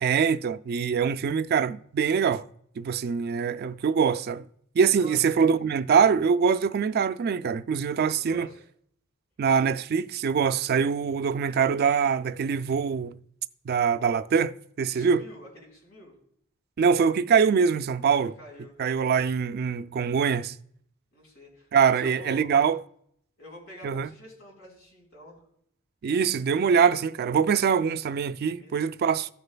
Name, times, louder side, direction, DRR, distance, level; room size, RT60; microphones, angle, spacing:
voice 1, 0.0-2.5 2.8-4.4 4.8-8.5 9.4-13.2 13.7-15.2 16.8-18.3 18.8-20.5 21.7-22.8 23.8-24.1 26.0-29.3, right 6 dB, 50° right, 0.3 m, -23 dB
voice 2, 5.0-5.4 8.2-8.6 14.9-16.1 18.0-18.7 21.1-22.5 23.4-25.4 28.6-29.1, equal, 85° left, 4.0 m, -47 dB
16.0 x 6.5 x 2.2 m
head